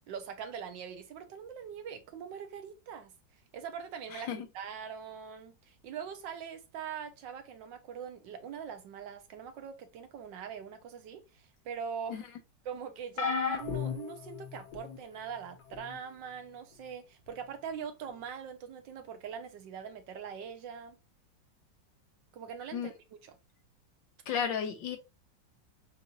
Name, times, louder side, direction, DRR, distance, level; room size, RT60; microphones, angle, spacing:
voice 1, 0.1-3.1 3.5-4.3 4.5-12.2 12.6-21.0 22.3-22.9 23.2-23.4, right 7 dB, 75° right, 1.5 m, -42 dB
voice 2, 4.1-4.5 12.1-12.2 22.7-22.9 24.3-25.0, left 7 dB, 80° left, 1.6 m, -33 dB
sound 1, 13.2-15.0 15.7-16.0 17.3-17.4, left 6 dB, 60° left, 1.4 m, -35 dB
6.9 x 2.6 x 3.0 m
omnidirectional pair, 2.0 m